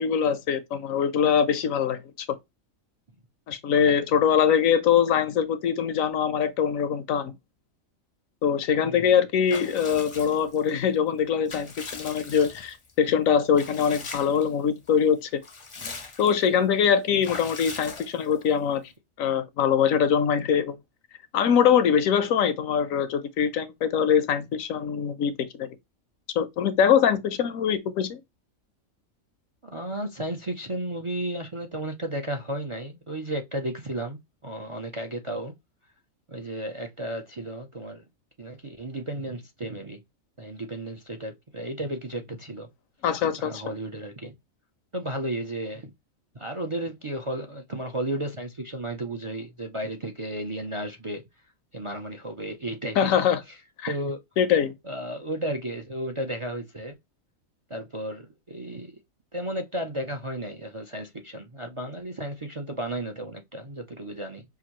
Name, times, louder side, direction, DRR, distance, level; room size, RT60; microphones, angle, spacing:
voice 1, 0.0-2.3 3.5-7.3 8.4-15.4 16.2-18.8 19.2-20.8 21.3-25.7 26.3-28.2 43.0-43.6 53.0-53.4 53.8-53.9 54.4-54.7, left 8 dB, 80° left, 1.1 m, -23 dB
Water / Bathtub (filling or washing) / Liquid, 9.5-10.7 11.2-12.9 13.5-14.5 14.9-15.0 15.3-16.5 17.2-18.5, left 4 dB, 35° left, 0.5 m, -40 dB
voice 2, 29.6-35.5 36.3-38.0 38.4-40.0 40.4-42.7 43.4-44.3 44.9-45.9 46.3-51.2 51.7-53.1 53.9-54.2 54.9-57.0 57.7-58.9 59.3-64.4, right 1 dB, 35° right, 0.5 m, -33 dB
5.7 x 2.7 x 2.9 m
omnidirectional pair, 1.4 m